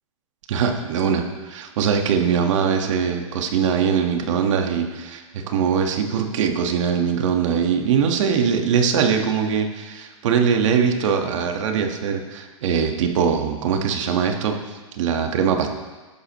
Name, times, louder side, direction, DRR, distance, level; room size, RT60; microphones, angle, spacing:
voice 1, 0.5-15.7, right 7 dB, 65° right, 4 dB, 1.6 m, -22 dB
14.5 x 11.5 x 3.1 m, 1.3 s
hypercardioid pair, 135°, 17 cm